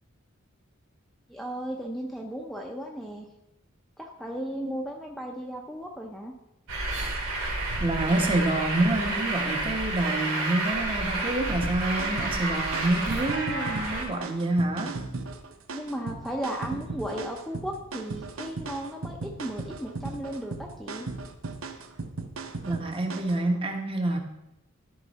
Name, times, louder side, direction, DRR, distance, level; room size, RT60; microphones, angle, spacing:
voice 1, 1.3-3.3 4.0-6.3 15.7-21.1, equal, ahead, 0 dB, 0.7 m, -35 dB
Truck, 6.7-14.0, right 2 dB, 85° right, 2.6 m, -30 dB
voice 2, 7.8-14.9 22.7-24.2, right 2 dB, 25° right, 4 dB, 1.0 m, -27 dB
sound 1, 11.6-23.4, right 3 dB, 65° right, 0.8 m, -37 dB
13.5 x 5.3 x 4.1 m, 0.88 s
head